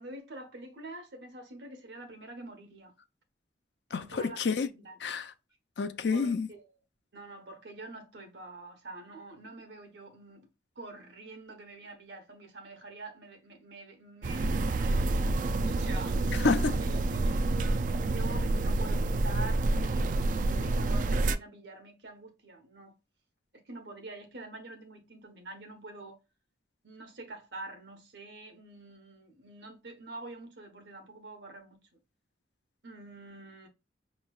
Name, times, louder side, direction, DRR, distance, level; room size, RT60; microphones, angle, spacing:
voice 1, 0.0-2.9 3.9-5.0 6.1-6.6 7.1-10.5 10.8-16.5 16.8-17.4 18.0-22.9 23.5-26.2 26.8-31.8 32.8-33.7, right 2 dB, 70° right, 1.1 m, -46 dB
voice 2, 3.9-4.7 5.0-5.3 5.8-6.5 16.4-16.8, left 4 dB, 70° left, 0.5 m, -29 dB
sound 1, 14.2-21.4, right 2 dB, 45° right, 0.3 m, -28 dB
5.4 x 3.1 x 2.3 m
head